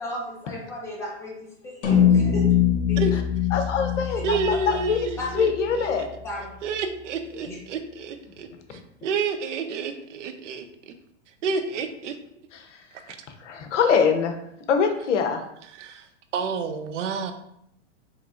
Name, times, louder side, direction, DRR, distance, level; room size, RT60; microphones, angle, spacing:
voice 1, 0.0-2.5 2.9-3.1 5.2-5.4 6.2-6.5 7.3-7.6, left 1 dB, 10° left, -4 dB, 0.4 m, -35 dB
sound 1, 1.8-6.3, left 9 dB, 70° left, 1.1 m, -23 dB
voice 2, 3.5-5.0 5.3-6.1 12.5-12.7 13.4-14.3 14.7-15.4, left 6 dB, 85° left, 6 dB, 0.7 m, -23 dB
voice 3, 4.2-6.1 6.6-10.9 11.4-12.2 12.9-13.2 15.8-16.1 16.3-17.3, right 5 dB, 90° right, 8 dB, 0.6 m, -30 dB
3.9 x 2.9 x 2.4 m, 0.74 s
supercardioid pair, 150°, 35 cm